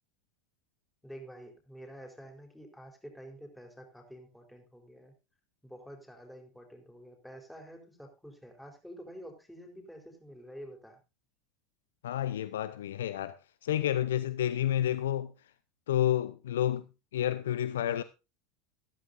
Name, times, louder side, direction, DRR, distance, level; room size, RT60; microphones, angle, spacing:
voice 1, 1.0-5.1 5.6-11.0, equal, 5° left, 4.1 m, -49 dB
voice 2, 12.0-15.3 15.9-16.9 17.1-18.0, left 11 dB, 65° left, 0.6 m, -30 dB
14.0 x 14.0 x 2.6 m
figure-of-eight pair, 75°, 0 cm